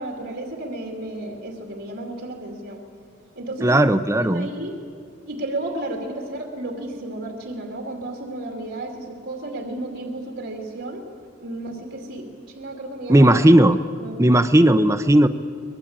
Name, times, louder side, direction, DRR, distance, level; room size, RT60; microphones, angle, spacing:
voice 1, 0.0-2.8 3.4-3.8 4.2-4.8 5.3-11.0 11.4-12.3 12.5-13.3 14.0-14.2, right 2 dB, 75° right, 2 dB, 2.6 m, -32 dB
voice 2, 3.6-4.5 13.1-13.8 14.2-15.3, right 1 dB, 15° right, 9 dB, 0.6 m, -15 dB
24.0 x 20.5 x 8.7 m, 2.3 s
head